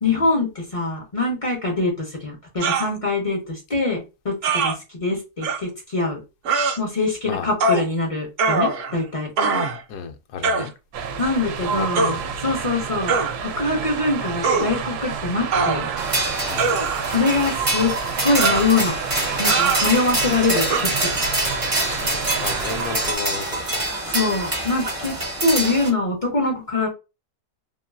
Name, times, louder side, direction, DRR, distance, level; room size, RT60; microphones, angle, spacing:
voice 1, 0.0-6.2 6.8-9.3 11.2-15.9 17.1-17.9 18.2-19.0 19.4-21.1 24.1-25.1 25.4-26.9, left 3 dB, 50° left, 0.4 m, -23 dB
sound 1, 2.6-2.9 4.4-4.7 5.4-5.6 6.4-6.8 7.6-7.9 8.4-9.0 9.4-9.8 10.4-10.7 11.9-12.2 13.1-13.3 14.4-14.7 15.5-16.1 16.6-17.2 18.4-18.7 19.5-19.9 20.7-20.9, right 4 dB, 65° right, 0.8 m, -22 dB
voice 2, 9.9-10.7 11.7-12.2 12.5-12.6 16.5-16.8 22.4-23.8 25.0-25.1, left 6 dB, 80° left, 1.1 m, -33 dB
sound 2, 10.9-23.2, right 6 dB, 80° right, 1.1 m, -30 dB
sound 3, 16.0-25.9, right 1 dB, 30° right, 0.6 m, -25 dB
2.9 x 2.5 x 2.2 m
omnidirectional pair, 1.7 m